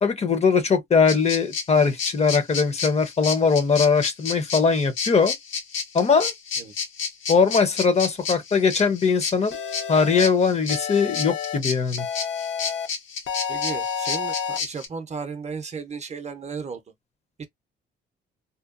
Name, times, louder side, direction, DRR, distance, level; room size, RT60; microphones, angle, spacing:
voice 1, 0.0-5.3 5.9-6.3 7.3-9.6 9.9-12.0, left 5 dB, 35° left, 0.6 m, -20 dB
sound 1, 1.1-14.9, left 5 dB, 90° left, 1.2 m, -31 dB
sound 2, 9.5-10.3 10.7-11.6 12.0-12.9 13.3-14.6, left 7 dB, 70° left, 0.7 m, -30 dB
voice 2, 13.5-16.8 17.4-17.5, right 5 dB, 35° right, 0.5 m, -34 dB
2.8 x 2.2 x 2.4 m
cardioid pair, 115°, 20 cm